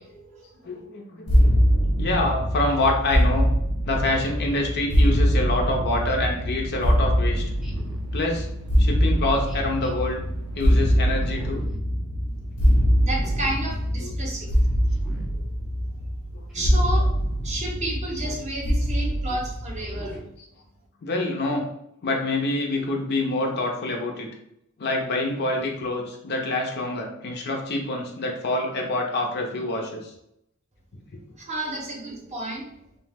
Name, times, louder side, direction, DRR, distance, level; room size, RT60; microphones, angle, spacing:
voice 1, 0.0-0.8 12.9-14.8 15.2-15.4 16.5-17.1 17.4-20.2 31.4-32.7, right 1 dB, 30° right, -1 dB, 0.7 m, -32 dB
voice 2, 0.6-1.6 2.0-3.5 3.9-7.4 8.1-8.5 8.8-10.2 10.5-11.6 14.0-14.1 16.3-16.7 19.3-19.4 19.8-19.9 21.0-21.7 22.0-24.3 24.8-30.1 31.1-31.2, left 2 dB, 50° left, 1 dB, 0.5 m, -26 dB
sound 1, 1.3-20.2, equal, 80° left, 0.9 m, -23 dB
Speech synthesizer, 2.7-3.0 4.1-4.7 6.1-6.4 7.6-8.1 9.4-9.9 11.2-11.8 13.1-13.6 14.9-15.3 16.5-16.8 18.1-18.5 19.8-20.3, equal, ahead, 0.3 m, -44 dB
sound 2, 3.9-11.7, right 1 dB, 85° right, 0.3 m, -39 dB
2.7 x 2.0 x 3.3 m, 0.77 s
head